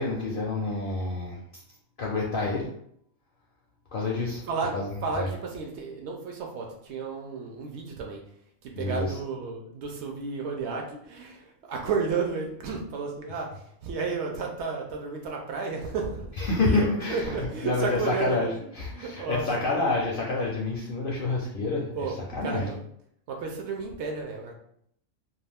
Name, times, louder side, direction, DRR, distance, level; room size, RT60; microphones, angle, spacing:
voice 1, 0.0-1.4 2.0-2.7 3.9-4.4 4.7-4.9 5.1-5.3 8.7-9.2 16.4-22.7, left 3 dB, 65° left, -3 dB, 0.5 m, -28 dB
voice 2, 5.0-8.2 8.6-13.5 13.8-16.3 16.6-18.5 18.9-19.5 19.7-19.8 21.9-22.1 22.4-22.8 23.3-24.5, right 4 dB, 65° right, 1 dB, 0.8 m, -32 dB
2.4 x 2.3 x 3.3 m, 0.70 s
omnidirectional pair, 1.4 m